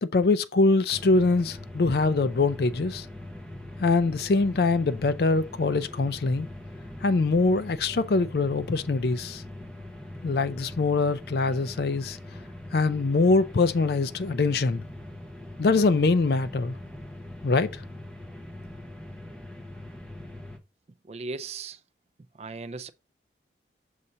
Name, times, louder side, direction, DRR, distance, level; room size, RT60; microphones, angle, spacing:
voice 1, 0.0-3.1 3.8-6.5 7.0-9.4 10.2-12.2 12.7-14.8 15.6-16.8 17.4-17.7, left 3 dB, 60° left, 0.4 m, -23 dB
sound 1, 0.9-20.6, left 1 dB, 5° left, 0.8 m, -42 dB
voice 2, 21.1-21.8 22.4-22.9, right 3 dB, 35° right, 0.3 m, -36 dB
6.4 x 2.8 x 5.4 m
head